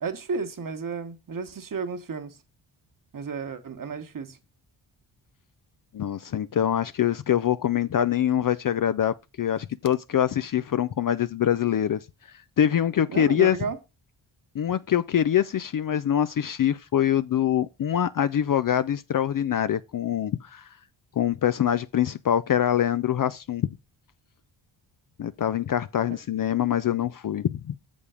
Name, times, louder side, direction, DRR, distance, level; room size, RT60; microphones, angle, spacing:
voice 1, 0.0-2.4 3.1-4.4 13.1-13.8 26.1-26.2, right 5 dB, 40° right, 1.3 m, -32 dB
voice 2, 5.9-12.0 12.6-13.6 14.5-20.6 21.2-23.8 25.2-27.8, left 10 dB, 45° left, 0.5 m, -24 dB
6.8 x 5.3 x 4.9 m
cardioid pair, 60°, 48 cm